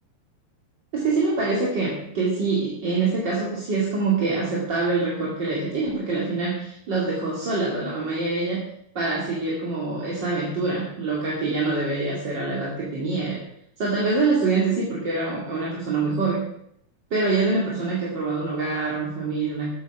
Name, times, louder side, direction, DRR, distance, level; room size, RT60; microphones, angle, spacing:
voice 1, 0.9-8.6 8.9-13.4 13.8-16.4 17.1-19.7, right 3 dB, 35° right, -4 dB, 2.4 m, -25 dB
13.5 x 8.1 x 6.1 m, 0.73 s
omnidirectional pair, 4.4 m